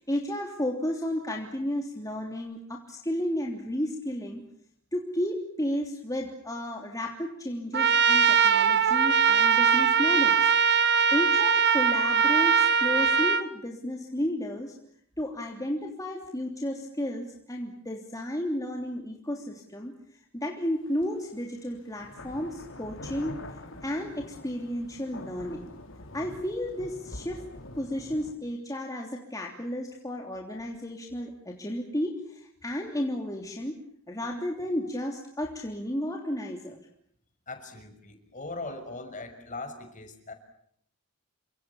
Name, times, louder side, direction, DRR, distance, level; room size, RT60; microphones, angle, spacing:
voice 1, 0.0-4.4 4.9-10.5 11.1-14.7 15.2-19.9 20.3-23.4 23.8-25.7 26.1-27.5 27.7-33.8 34.1-36.8, left 1 dB, 15° left, 1 dB, 3.2 m, -32 dB
Trumpet, 7.7-13.4, right 6 dB, 50° right, 1.8 m, -21 dB
sound 1, 21.0-21.1 21.9-28.3, left 1 dB, 60° left, 4.9 m, -44 dB
voice 2, 37.5-40.3, left 3 dB, 35° left, 7 dB, 6.2 m, -40 dB
29.5 x 26.0 x 7.2 m, 0.68 s
head